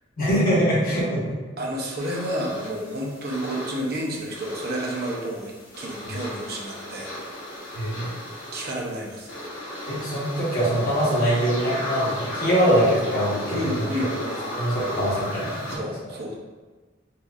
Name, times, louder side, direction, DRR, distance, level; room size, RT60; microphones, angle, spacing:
voice 1, 0.2-1.2 6.1-6.2 7.7-8.2 9.9-13.9 14.5-15.8, equal, 50° left, -7 dB, 1.2 m, -23 dB
voice 2, 1.6-7.1 8.5-9.3 13.5-14.4 15.7-16.3, right 1 dB, 55° right, -2 dB, 0.6 m, -30 dB
sound 1, 2.0-15.8, left 1 dB, 75° left, 1.2 m, -35 dB
4.2 x 2.5 x 2.4 m, 1.3 s
head